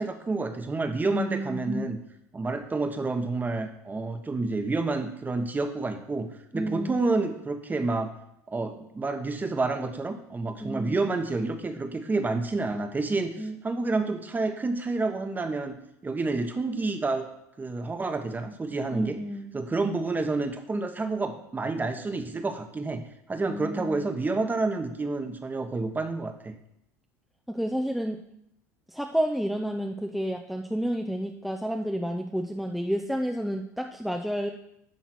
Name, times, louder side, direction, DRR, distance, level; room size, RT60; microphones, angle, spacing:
voice 1, 0.0-2.0 2.3-8.1 8.5-17.3 17.6-19.2 19.5-23.0 23.3-26.5, right 3 dB, 20° right, 7 dB, 1.2 m, -29 dB
voice 2, 1.0-1.9 6.5-7.0 10.6-11.0 13.4-13.6 18.9-19.5 23.5-24.1 27.5-28.2 28.9-34.5, equal, ahead, 3 dB, 0.6 m, -30 dB
10.5 x 4.0 x 6.1 m, 0.78 s
hypercardioid pair, 75°, 9 cm